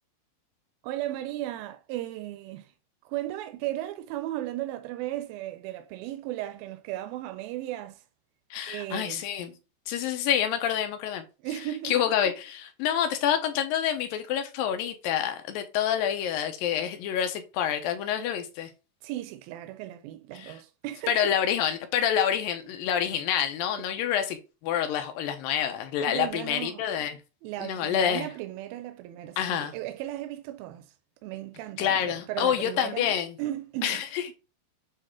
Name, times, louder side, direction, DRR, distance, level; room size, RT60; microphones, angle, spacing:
voice 1, 0.8-2.7 3.1-8.0 8.7-9.2 11.4-11.9 19.0-21.3 23.8-23.9 26.0-26.9 27.4-30.9 31.2-34.0, right 14 dB, 85° right, 2.4 m, -36 dB
voice 2, 8.5-9.5 9.9-11.2 11.8-18.7 20.3-20.5 21.1-24.4 24.6-27.2 27.6-28.3 29.4-29.7 31.8-33.4 33.8-34.3, left 9 dB, 80° left, 2.5 m, -27 dB
8.3 x 3.2 x 3.7 m
omnidirectional pair, 4.2 m